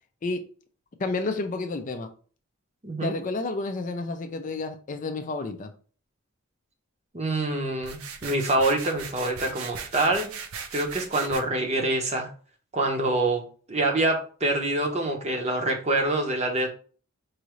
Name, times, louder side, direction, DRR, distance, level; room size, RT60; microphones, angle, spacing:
voice 1, 1.0-2.1 3.0-5.7, left 3 dB, 35° left, 6 dB, 0.4 m, -30 dB
voice 2, 2.8-3.1 7.1-10.3 10.7-12.3 12.7-13.4 13.7-16.7, right 2 dB, 30° right, 3 dB, 0.7 m, -25 dB
sound 1, 7.8-11.4, right 6 dB, 75° right, 0.5 m, -38 dB
4.8 x 2.6 x 3.1 m, 0.40 s
head